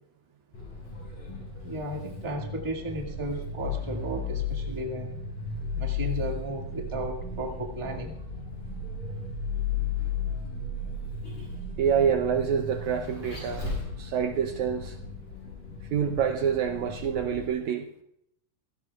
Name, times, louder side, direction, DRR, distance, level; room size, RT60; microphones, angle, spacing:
Vehicle, 0.5-17.5, left 4 dB, 75° left, 8.9 m, -35 dB
voice 1, 1.6-5.2 5.8-8.2, right 1 dB, 10° right, 1.4 m, -34 dB
voice 2, 11.8-13.7 14.0-15.0 15.9-17.9, right 8 dB, 75° right, 1.9 m, -27 dB
26.0 x 16.5 x 2.4 m
omnidirectional pair, 3.8 m